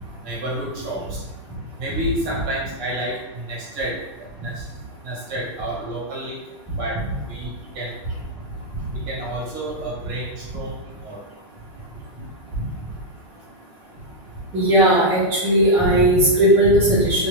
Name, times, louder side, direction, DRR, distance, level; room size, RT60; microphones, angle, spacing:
voice 1, 0.2-1.2 1.8-4.0 4.3-4.7 5.0-6.4 6.8-8.0 8.9-11.2, right 1 dB, 30° right, -6 dB, 1.1 m, -30 dB
voice 2, 14.5-17.3, right 1 dB, 15° right, -10 dB, 0.6 m, -16 dB
2.9 x 2.4 x 3.0 m, 1.1 s
supercardioid pair, 165°, 16 cm